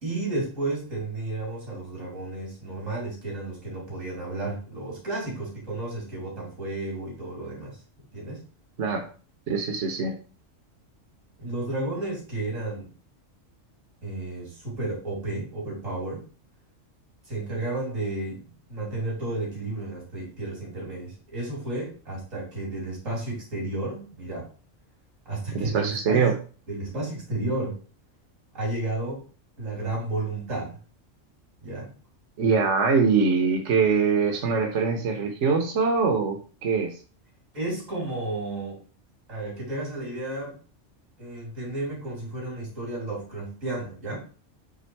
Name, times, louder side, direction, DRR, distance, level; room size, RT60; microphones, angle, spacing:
voice 1, 0.0-7.8 8.1-8.4 11.4-12.9 14.0-16.2 17.3-18.4 18.7-24.5 25.3-26.2 26.7-27.8 28.5-29.2 29.6-30.8 31.6-31.9 37.5-38.8 39.3-40.6 41.2-44.2, right 2 dB, 85° right, -3 dB, 3.5 m, -32 dB
voice 2, 9.5-10.1 25.5-26.4 32.4-37.0, right 5 dB, 65° right, 4 dB, 1.3 m, -23 dB
8.1 x 3.5 x 4.6 m, 0.38 s
omnidirectional pair, 1.3 m